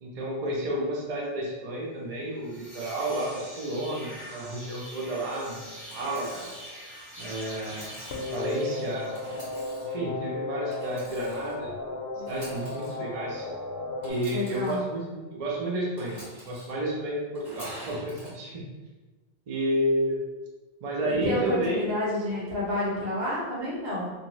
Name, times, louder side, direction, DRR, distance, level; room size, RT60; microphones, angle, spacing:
voice 1, 0.0-6.5 7.2-7.9 8.3-9.1 9.8-11.7 12.2-13.5 14.0-16.2 16.4-18.6 19.5-20.2 20.8-21.8, right 1 dB, 50° right, -3 dB, 0.5 m, -31 dB
sound 1, 2.3-9.7, equal, 10° left, 0.8 m, -44 dB
Engine / Sawing, 5.9-6.7 7.5-8.4 9.1-10.0 10.7-11.6 12.2-13.0 14.0-14.8 16.0-16.7 17.3-18.3, equal, 20° right, 1.3 m, -46 dB
sound 2, 8.1-14.1, left 3 dB, 70° left, 0.8 m, -34 dB
voice 2, 14.3-14.8 21.0-24.1, left 1 dB, 65° right, -7 dB, 1.2 m, -29 dB
2.6 x 2.3 x 2.9 m, 1.2 s
omnidirectional pair, 1.1 m